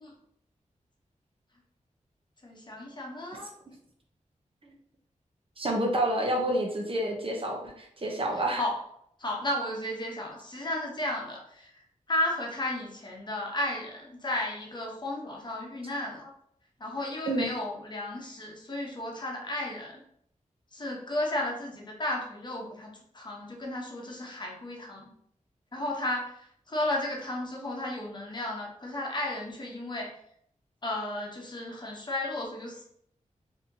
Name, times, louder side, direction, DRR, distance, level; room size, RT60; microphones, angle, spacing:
voice 1, 2.4-3.5 8.6-8.8 9.2-11.8 12.1-16.3 16.8-20.0 20.7-25.1 25.7-30.1 30.8-32.8, left 1 dB, 35° left, -1 dB, 1.0 m, -33 dB
voice 2, 5.6-8.6 17.3-17.5, right 1 dB, 45° right, 0 dB, 0.8 m, -29 dB
4.1 x 2.8 x 2.7 m, 0.69 s
wide cardioid pair, 85°, 13 cm